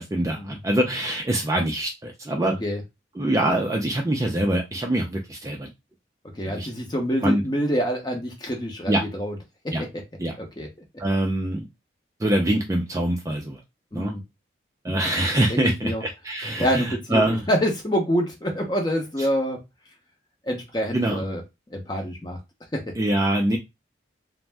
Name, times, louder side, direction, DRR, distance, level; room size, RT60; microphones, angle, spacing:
voice 1, 0.0-2.6 3.2-5.7 6.4-6.7 7.2-7.4 8.9-9.0 9.7-9.8 10.2-10.3 11.0-11.7 12.2-13.6 13.9-14.1 14.8-17.4 20.9-21.2 23.0-23.6, right 1 dB, 15° right, 1 dB, 0.3 m, -24 dB
voice 2, 6.4-9.3 9.6-9.9 10.4-10.7 13.9-14.2 15.5-16.0 16.6-19.6 20.4-21.4 21.7-22.4 22.7-22.9, equal, 20° left, 2 dB, 0.7 m, -26 dB
2.6 x 2.0 x 3.3 m, 0.22 s
head